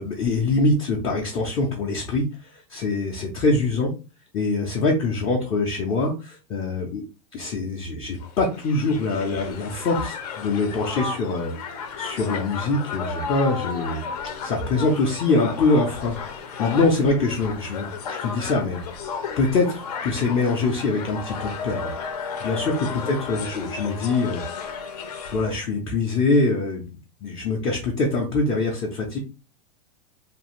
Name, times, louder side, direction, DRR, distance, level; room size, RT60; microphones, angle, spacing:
voice 1, 0.0-3.9 4.3-7.0 7.3-14.0 14.4-16.2 16.6-18.8 19.4-21.9 22.4-24.8 25.3-26.8 27.2-29.2, left 3 dB, 20° left, -1 dB, 0.4 m, -24 dB
Crowd, 8.2-25.6, left 5 dB, 75° left, 0.7 m, -33 dB
2.5 x 2.4 x 2.9 m, 0.32 s
supercardioid pair, 160°, 21 cm